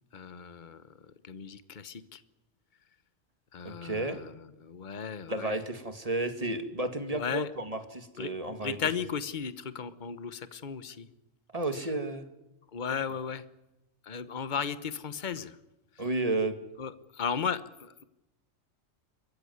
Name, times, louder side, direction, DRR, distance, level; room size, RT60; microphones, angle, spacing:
voice 1, 0.1-0.8 1.2-2.2 3.5-4.3 4.6-5.5 7.1-7.5 8.2-11.1 12.7-13.4 14.1-15.5 16.8-17.9, left 6 dB, 40° left, 13 dB, 1.2 m, -35 dB
voice 2, 3.6-4.2 5.3-8.8 11.5-12.2 16.0-16.5, right 2 dB, 25° right, 8 dB, 2.3 m, -32 dB
26.5 x 15.0 x 9.5 m, 0.96 s
omnidirectional pair, 1.4 m